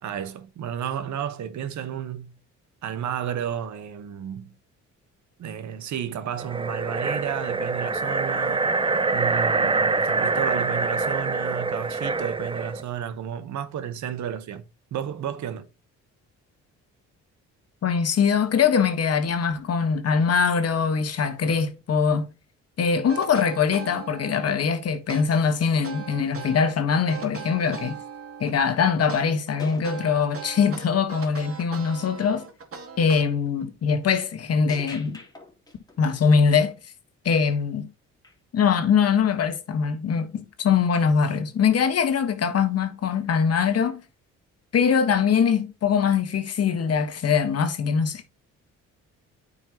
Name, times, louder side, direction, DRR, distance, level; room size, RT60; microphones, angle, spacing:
voice 1, 0.0-2.4 2.8-4.5 5.4-8.7 9.1-14.6 14.9-15.7, right 9 dB, 70° right, 1.2 m, -32 dB
sound 1, 6.4-12.8, right 3 dB, 15° right, 0.7 m, -25 dB
voice 2, 17.8-22.3 22.8-28.0 28.4-32.5 33.0-35.2 36.0-36.7 37.2-37.9 38.5-44.0 44.7-48.2, left 6 dB, 55° left, 1.5 m, -22 dB
sound 2, 23.1-24.6 25.1-26.7 27.1-28.6 29.1-33.6, right 6 dB, 45° right, 2.5 m, -39 dB
sound 3, 29.6-31.5 31.8-32.1 34.7-36.6 38.2-38.4 42.7-42.8, left 3 dB, 15° left, 3.1 m, -45 dB
9.1 x 5.4 x 3.0 m
cardioid pair, 90°, 30 cm